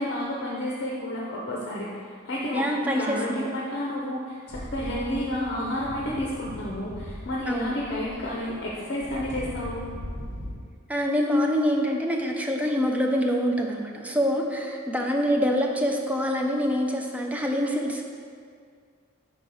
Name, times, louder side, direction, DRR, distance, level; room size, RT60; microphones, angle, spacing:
voice 1, 0.0-9.9, left 1 dB, 55° left, -4 dB, 0.7 m, -31 dB
voice 2, 2.5-3.5 7.5-7.7 10.9-18.0, equal, 5° right, 1 dB, 0.5 m, -25 dB
sound 1, 4.5-10.5, equal, 40° right, 1.1 m, -39 dB
5.5 x 4.2 x 4.8 m, 2.1 s
head